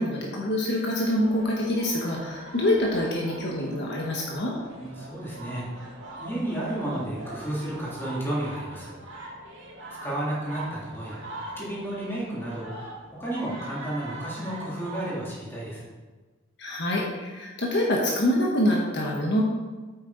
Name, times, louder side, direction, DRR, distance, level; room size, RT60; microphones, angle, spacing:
voice 1, 0.0-4.5 16.6-19.4, left 1 dB, 55° left, -2 dB, 1.4 m, -25 dB
sound 1, 1.2-15.2, right 1 dB, 65° right, 2.1 m, -42 dB
voice 2, 4.7-5.7 6.2-9.0 10.0-12.8 13.2-15.8, right 1 dB, 10° left, -7 dB, 3.3 m, -32 dB
8.8 x 8.6 x 4.1 m, 1.3 s
head